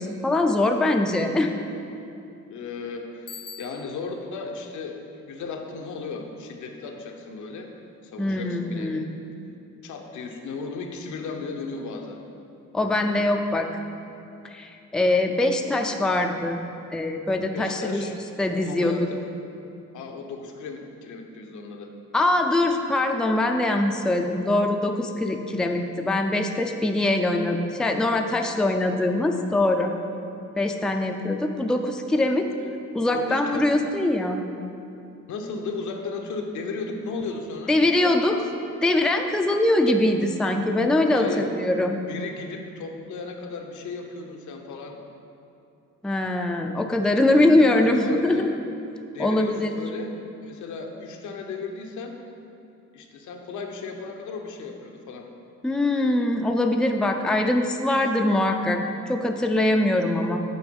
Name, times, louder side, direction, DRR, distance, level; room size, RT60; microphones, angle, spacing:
voice 1, 0.0-1.5 8.2-9.1 12.7-13.7 14.4-16.6 16.9-18.0 18.4-19.0 22.1-29.9 30.6-32.5 32.9-34.4 37.7-38.4 38.8-42.0 46.0-48.5 49.2-49.7 55.6-60.4, left 1 dB, ahead, 4 dB, 0.4 m, -22 dB
voice 2, 2.5-7.7 8.0-9.1 9.8-12.2 17.5-18.1 18.6-19.3 19.9-21.9 30.6-30.7 33.1-33.6 35.3-37.8 41.1-41.6 42.0-45.0 47.2-47.5 47.8-48.5 49.1-52.2 52.9-55.3, left 4 dB, 75° left, 3 dB, 0.8 m, -35 dB
Bicycle bell, 3.3-4.2, left 6 dB, 50° left, 0.6 m, -42 dB
8.1 x 4.3 x 5.2 m, 2.7 s
cardioid pair, 90°, 30 cm